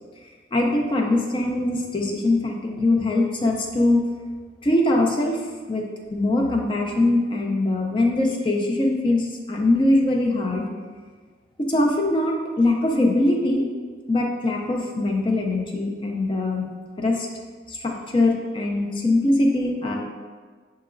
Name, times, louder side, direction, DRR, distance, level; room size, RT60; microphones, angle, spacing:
voice 1, 0.5-4.0 4.6-5.4 5.7-5.8 6.1-10.7 11.6-13.7 14.1-16.7 17.0-17.3 17.7-20.0, left 2 dB, 25° left, 0 dB, 0.4 m, -22 dB
5.7 x 2.9 x 2.5 m, 1.5 s
head